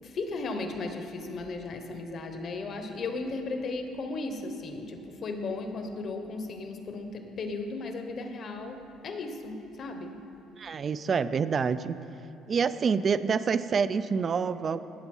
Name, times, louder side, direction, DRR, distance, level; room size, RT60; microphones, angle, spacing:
voice 1, 0.0-10.2, left 3 dB, 35° left, 6 dB, 1.0 m, -36 dB
voice 2, 10.6-12.0 12.5-14.8, right 6 dB, 30° right, 14 dB, 0.3 m, -27 dB
17.0 x 7.1 x 5.4 m, 2.9 s
cardioid pair, 175°, 0 cm